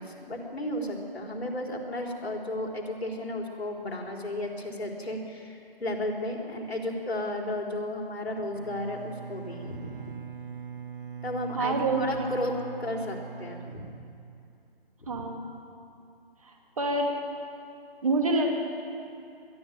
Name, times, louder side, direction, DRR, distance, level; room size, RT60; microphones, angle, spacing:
voice 1, 0.0-10.1 11.2-13.9 15.0-15.3, left 1 dB, 80° left, 0 dB, 4.2 m, -34 dB
Bowed string instrument, 8.5-14.6, right 7 dB, 60° right, 1.0 m, -42 dB
voice 2, 11.5-12.3 15.1-15.4 16.4-17.1 18.0-18.5, right 2 dB, 35° right, 1 dB, 2.6 m, -27 dB
21.5 x 13.0 x 9.1 m, 2.5 s
figure-of-eight pair, 170°, 31 cm